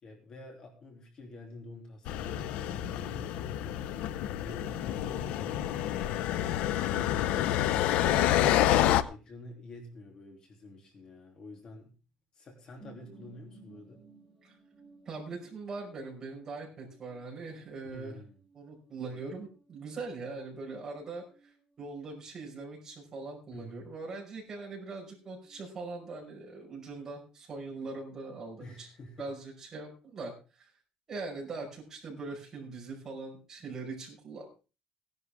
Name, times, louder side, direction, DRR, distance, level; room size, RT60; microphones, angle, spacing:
voice 1, 0.0-8.8 9.1-11.9 12.3-14.0 17.9-18.4 23.5-23.8 28.6-29.3, left 2 dB, 35° left, 2 dB, 3.1 m, -48 dB
sound 1, 2.1-9.0, left 12 dB, 80° left, 0.8 m, -28 dB
sound 2, 12.8-26.3 26.5-27.4 27.7-27.8, right 4 dB, 15° left, 6.5 m, -61 dB
voice 2, 15.1-18.2 18.5-28.9 29.2-30.7 31.1-34.5, right 3 dB, 25° right, -2 dB, 5.5 m, -41 dB
18.0 x 11.0 x 3.6 m, 0.33 s
cardioid pair, 165°, 2 cm